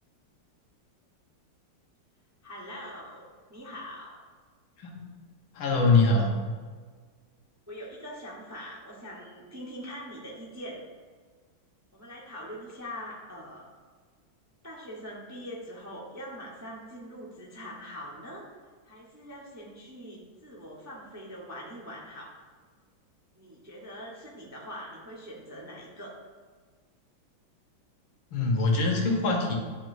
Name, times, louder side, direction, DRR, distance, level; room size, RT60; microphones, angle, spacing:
voice 1, 2.4-4.2 7.7-10.8 11.9-13.6 14.6-18.4 18.8-22.3 23.4-26.2, equal, 15° right, -4 dB, 0.5 m, -43 dB
voice 2, 4.8-5.1 5.5-6.4 28.3-29.6, left 3 dB, 80° left, 0 dB, 1.9 m, -23 dB
10.5 x 4.5 x 2.6 m, 1.6 s
omnidirectional pair, 2.1 m